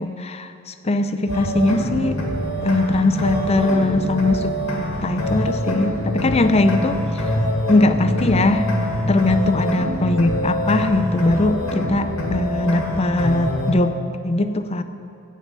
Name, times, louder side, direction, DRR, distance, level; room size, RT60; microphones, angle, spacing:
voice 1, 0.0-2.2 2.6-4.6 5.0-7.3 7.7-8.7 9.1-14.8, left 2 dB, 30° left, 10 dB, 0.5 m, -20 dB
sound 1, 1.3-13.7, equal, 80° left, 2.5 m, -24 dB
16.5 x 5.7 x 7.4 m, 2.7 s
head